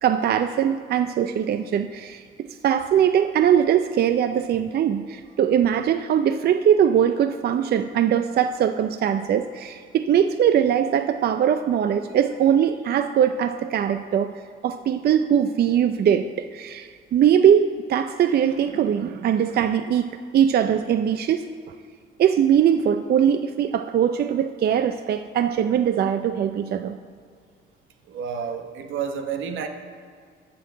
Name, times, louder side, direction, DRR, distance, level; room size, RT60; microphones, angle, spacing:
voice 1, 0.0-14.3 14.6-21.5 22.2-27.0, right 9 dB, 55° right, 9 dB, 0.4 m, -21 dB
voice 2, 28.1-29.7, right 7 dB, 80° right, 7 dB, 0.9 m, -30 dB
13.0 x 4.6 x 7.5 m, 2.1 s
cardioid pair, 90°, 20 cm